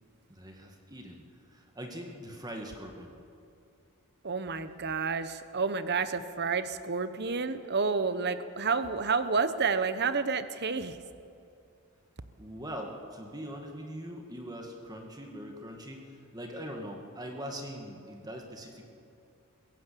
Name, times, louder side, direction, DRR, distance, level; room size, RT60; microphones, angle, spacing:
voice 1, 0.3-3.1 12.4-18.8, equal, 20° right, 2 dB, 1.9 m, -42 dB
voice 2, 4.2-11.0, right 4 dB, 50° right, 12 dB, 1.0 m, -30 dB
22.5 x 15.5 x 8.5 m, 2.5 s
head